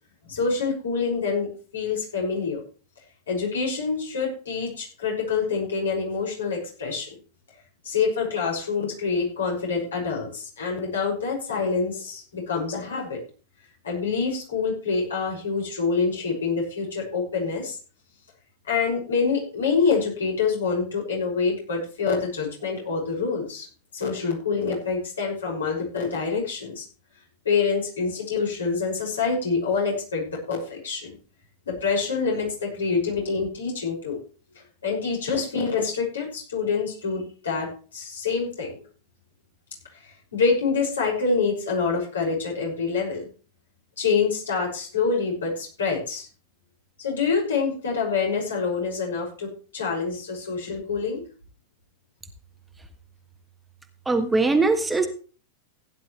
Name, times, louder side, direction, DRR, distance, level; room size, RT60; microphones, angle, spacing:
voice 1, 0.2-2.6 3.3-7.1 7.8-13.2 13.8-17.8 18.6-23.7 23.9-26.8 27.4-31.1 31.7-34.2 34.8-38.7 40.0-43.3 44.0-46.3 47.0-51.2, left 5 dB, 70° left, -1 dB, 6.3 m, -26 dB
voice 2, 54.0-55.1, right 3 dB, 10° right, 6 dB, 1.5 m, -21 dB
16.5 x 10.5 x 3.2 m, 0.38 s
figure-of-eight pair, 90°, 0 cm